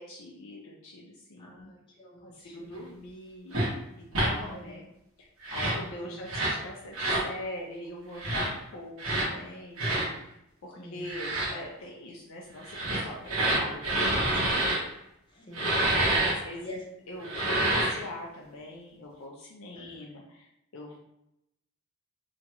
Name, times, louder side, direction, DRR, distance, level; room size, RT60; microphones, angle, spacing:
voice 1, 0.0-1.7 2.2-3.6 4.0-4.8 5.2-10.0 10.6-14.7 16.1-16.7 17.1-20.5 20.7-21.0, left 1 dB, 70° left, -2 dB, 0.5 m, -42 dB
voice 2, 1.4-2.9 4.2-4.8 6.0-6.4 10.8-11.1 15.3-15.9 16.6-16.8 19.8-20.0, left 1 dB, 20° left, -2 dB, 0.5 m, -45 dB
sound 1, 3.5-3.7 4.1-4.3 5.4-5.8 6.3-6.6 6.9-7.3 8.2-8.5 9.0-9.3 9.8-10.1 11.0-11.5 12.6-14.8 15.5-16.3 17.2-18.0, right 1 dB, 70° right, 1.1 m, -27 dB
2.8 x 2.3 x 2.8 m, 0.82 s
head